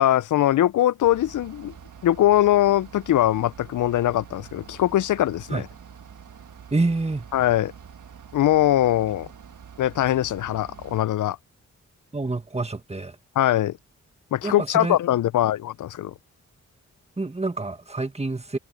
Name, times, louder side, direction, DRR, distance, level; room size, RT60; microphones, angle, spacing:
voice 1, 0.0-1.7 2.0-5.7 7.3-7.7 8.3-9.3 9.8-11.4 13.4-13.8 14.3-16.1, left 13 dB, 85° left, 0.5 m, -21 dB
Bus / Idling, 1.0-11.0, right 7 dB, 85° right, 1.5 m, -46 dB
voice 2, 6.7-7.2 12.1-13.2 14.4-15.0 17.2-18.6, right 3 dB, 20° right, 1.6 m, -27 dB
cardioid pair, 70°, 30 cm